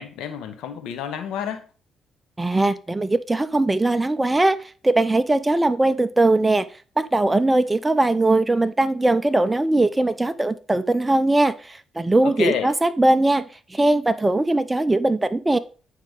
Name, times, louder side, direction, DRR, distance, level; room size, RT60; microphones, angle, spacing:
voice 1, 0.0-1.6 12.2-12.7, left 8 dB, 90° left, 1.1 m, -29 dB
voice 2, 2.4-6.7 7.0-13.4 13.7-15.6, right 2 dB, 15° right, 0.5 m, -20 dB
9.3 x 4.9 x 3.7 m
cardioid pair, 90°, 0 cm